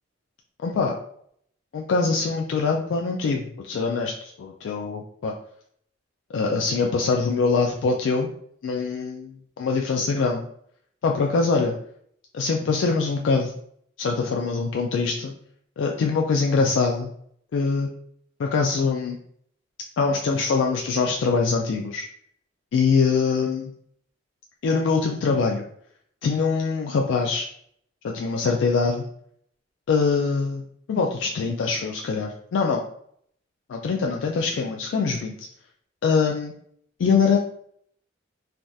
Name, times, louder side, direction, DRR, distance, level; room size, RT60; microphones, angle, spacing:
voice 1, 0.6-1.0 1.7-5.3 6.3-8.3 8.6-10.4 11.0-11.7 12.3-13.5 14.0-15.3 15.8-17.1 17.5-17.9 18.4-19.2 20.0-22.1 22.7-23.7 24.6-25.6 26.2-27.5 28.0-29.1 29.9-32.9 33.7-35.5 36.0-36.5 37.0-37.4, left 4 dB, 75° left, 1 dB, 0.3 m, -23 dB
3.3 x 2.6 x 2.3 m, 0.66 s
head